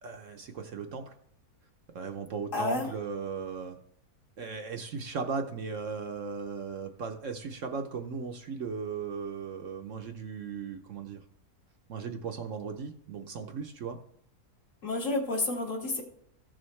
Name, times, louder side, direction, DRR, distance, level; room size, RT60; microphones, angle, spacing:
voice 1, 0.0-1.2 1.9-3.7 4.4-11.2 11.9-14.0, right 5 dB, 60° right, 5 dB, 1.0 m, -37 dB
voice 2, 2.5-2.9 14.8-16.0, left 2 dB, 55° left, 0 dB, 2.3 m, -30 dB
15.0 x 6.3 x 3.2 m, 0.70 s
omnidirectional pair, 1.7 m